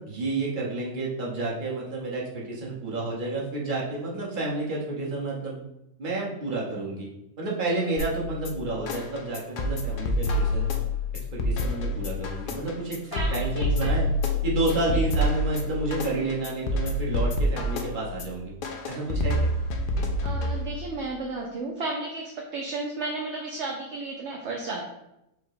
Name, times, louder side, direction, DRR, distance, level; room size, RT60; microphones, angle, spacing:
voice 1, 0.0-5.6 6.0-7.1 7.4-10.7 11.3-13.0 13.3-14.1 14.4-18.5 18.9-19.5, right 2 dB, 40° right, -4 dB, 1.2 m, -30 dB
sound 1, 8.0-21.0, left 1 dB, 60° left, 0.5 m, -27 dB
voice 2, 13.1-13.7 14.9-15.0 20.2-24.8, right 3 dB, 65° right, 0 dB, 0.8 m, -33 dB
4.7 x 2.2 x 4.7 m, 0.86 s
omnidirectional pair, 1.4 m